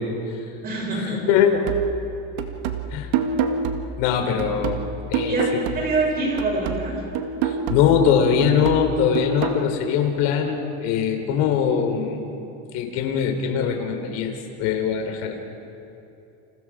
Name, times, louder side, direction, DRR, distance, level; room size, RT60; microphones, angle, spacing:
voice 1, 0.0-0.4 0.9-1.6 2.9-3.1 4.0-4.8 5.1-5.4 7.4-12.2 12.7-15.4, left 7 dB, 65° left, 4 dB, 3.9 m, -22 dB
voice 2, 0.6-1.2 5.3-7.0, right 2 dB, 30° right, -1 dB, 7.0 m, -25 dB
sound 1, 1.7-6.1 6.4-9.7, right 6 dB, 70° right, 2.0 m, -28 dB
30.0 x 28.0 x 5.0 m, 2.8 s
cardioid pair, 160°, 33 cm